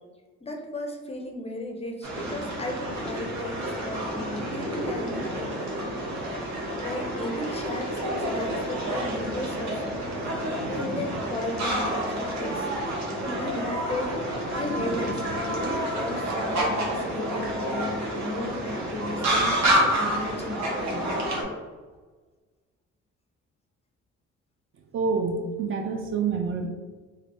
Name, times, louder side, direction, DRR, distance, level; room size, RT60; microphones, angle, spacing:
voice 1, 0.4-5.5 6.8-10.0 10.7-12.7 13.4-21.1, left 2 dB, 20° left, 2 dB, 0.5 m, -35 dB
sound 1, 2.0-21.4, right 1 dB, 65° right, 0.9 m, -29 dB
voice 2, 24.9-26.7, right 5 dB, 45° right, 4 dB, 0.4 m, -27 dB
3.3 x 2.8 x 2.5 m, 1.3 s
cardioid pair, 90°, 30 cm